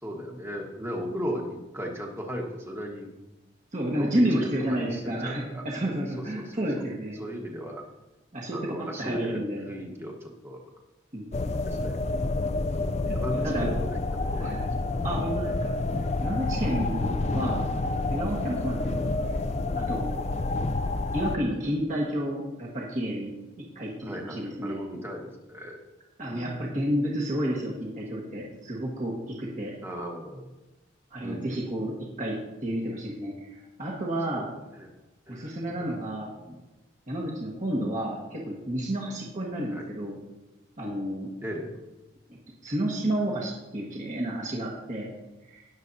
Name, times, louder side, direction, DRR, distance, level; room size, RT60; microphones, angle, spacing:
voice 1, 0.0-3.1 4.0-5.6 6.2-6.5 7.2-7.8 8.5-10.6 11.3-12.0 12.8-14.6 16.9-17.3 24.0-25.8 26.2-26.8 29.8-30.5 31.2-31.9 34.3-34.4 34.7-34.9 35.3-35.5 35.8-36.2 36.4-36.6 37.6-37.8 39.7-39.9 41.4-41.7, equal, 10° right, 0 dB, 1.3 m, -37 dB
voice 2, 3.7-7.2 8.3-9.7 11.1-11.6 13.3-13.7 14.3-14.7 15.0-15.8 16.2-17.7 18.1-19.1 19.7-20.2 21.1-23.3 23.6-24.8 26.2-29.7 31.1-34.5 35.3-36.3 37.1-40.2 40.8-41.3 42.6-45.1 45.5-45.7, right 1 dB, 35° right, -4 dB, 1.5 m, -31 dB
sound 1, 11.3-21.4, left 2 dB, 30° left, 0.4 m, -28 dB
19.5 x 7.3 x 2.7 m, 1.1 s
head